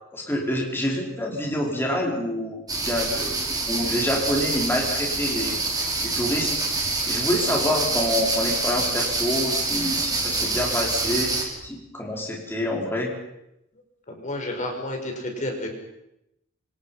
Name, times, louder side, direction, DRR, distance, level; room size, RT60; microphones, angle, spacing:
voice 1, 0.1-3.4 3.7-5.6 6.0-6.8 7.1-13.1, left 1 dB, 10° left, -1 dB, 4.8 m, -27 dB
sound 1, 2.7-11.4, right 3 dB, 20° right, 5.7 m, -26 dB
voice 2, 14.1-15.7, left 1 dB, 35° left, 3 dB, 5.5 m, -31 dB
27.0 x 25.5 x 5.8 m, 0.84 s
head